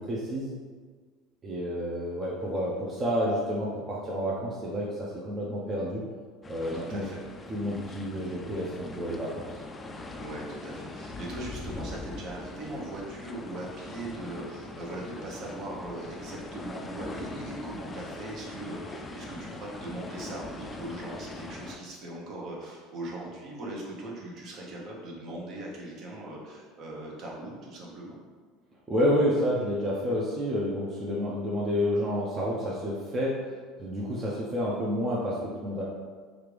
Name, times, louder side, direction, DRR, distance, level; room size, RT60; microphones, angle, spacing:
voice 1, 0.1-0.5 1.4-6.0 6.5-7.1 7.5-9.5 28.9-33.3 33.8-35.8, equal, 30° right, -5 dB, 0.6 m, -29 dB
sound 1, 6.4-21.8, left 2 dB, 25° left, 0.3 m, -42 dB
voice 2, 6.7-7.2 10.1-28.2, right 1 dB, 55° right, -3 dB, 0.9 m, -39 dB
3.2 x 2.5 x 3.3 m, 1.6 s
supercardioid pair, 95°, 0 cm